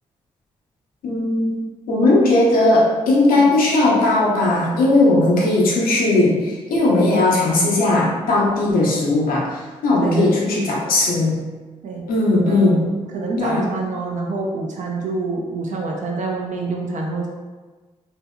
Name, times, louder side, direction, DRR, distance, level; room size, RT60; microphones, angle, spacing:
voice 1, 1.0-1.6 1.9-11.4 12.1-12.9 13.4-13.6, left 2 dB, 80° left, -4 dB, 0.7 m, -17 dB
voice 2, 10.0-10.5 11.8-12.0 12.3-17.3, right 3 dB, 60° right, -1 dB, 0.5 m, -27 dB
2.8 x 2.6 x 2.2 m, 1.3 s
supercardioid pair, 40°, 15 cm